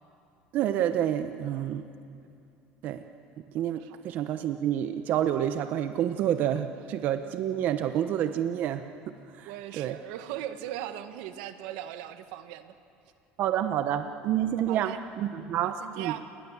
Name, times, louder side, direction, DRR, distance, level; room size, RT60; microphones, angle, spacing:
voice 1, 0.5-1.8 2.8-3.0 3.5-8.9 9.3-9.9 13.4-16.1, right 10 dB, 45° right, 9 dB, 0.8 m, -28 dB
voice 2, 9.4-12.7 14.4-15.0 15.5-16.3, right 12 dB, 80° right, 10 dB, 1.4 m, -39 dB
28.5 x 20.5 x 7.3 m, 2.5 s
cardioid pair, 160°, 4 cm